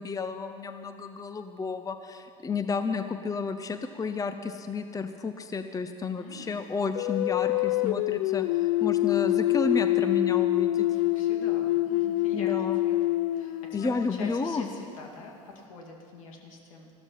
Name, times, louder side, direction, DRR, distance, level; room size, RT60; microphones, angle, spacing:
voice 1, 0.0-10.9 12.3-12.8 13.7-14.7, left 4 dB, 20° left, 9 dB, 0.8 m, -31 dB
voice 2, 6.2-6.6 10.7-12.6 12.8-13.0 13.3-16.9, left 3 dB, 75° left, 1 dB, 2.3 m, -44 dB
sound 1, 6.9-14.3, left 15 dB, 60° left, 0.4 m, -26 dB
14.5 x 12.5 x 5.7 m, 2.3 s
hypercardioid pair, 70°, 17 cm